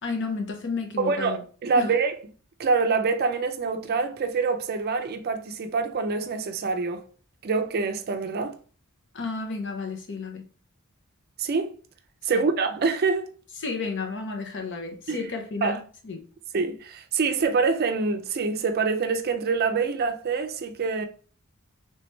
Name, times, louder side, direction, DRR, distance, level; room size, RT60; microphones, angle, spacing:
voice 1, 0.0-1.4 1.8-1.9 9.1-10.4 12.3-12.4 13.6-15.8 16.0-16.2, left 4 dB, 55° left, 0.8 m, -32 dB
voice 2, 1.0-2.1 2.6-7.0 7.4-8.5 11.4-11.7 12.3-13.3 15.1-15.2 15.6-15.8 16.5-21.1, right 4 dB, 45° right, 0.4 m, -25 dB
3.3 x 3.1 x 3.1 m
head